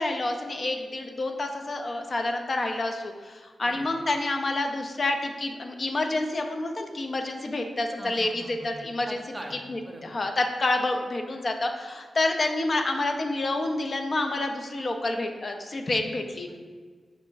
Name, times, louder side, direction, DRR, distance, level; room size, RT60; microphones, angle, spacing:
voice 1, 0.0-9.2 9.7-16.5, left 2 dB, 50° left, 4 dB, 0.4 m, -28 dB
voice 2, 8.0-10.2 16.5-16.6, right 1 dB, 20° right, 2 dB, 0.6 m, -43 dB
4.3 x 2.5 x 3.8 m, 1.5 s
cardioid pair, 50°, 0 cm